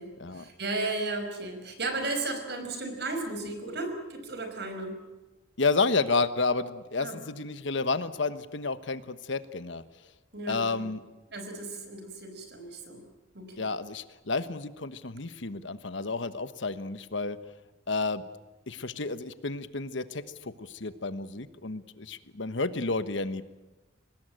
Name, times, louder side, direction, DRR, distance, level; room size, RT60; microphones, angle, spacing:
voice 1, 0.0-5.0 7.0-7.2 10.3-10.9 11.3-13.0 13.3-13.7, right 2 dB, 55° right, 6 dB, 5.3 m, -35 dB
voice 2, 5.6-9.8 10.5-11.0 13.6-17.4 17.9-18.2 18.7-23.4, left 3 dB, 65° left, 12 dB, 1.2 m, -31 dB
24.5 x 19.5 x 9.1 m, 1.1 s
head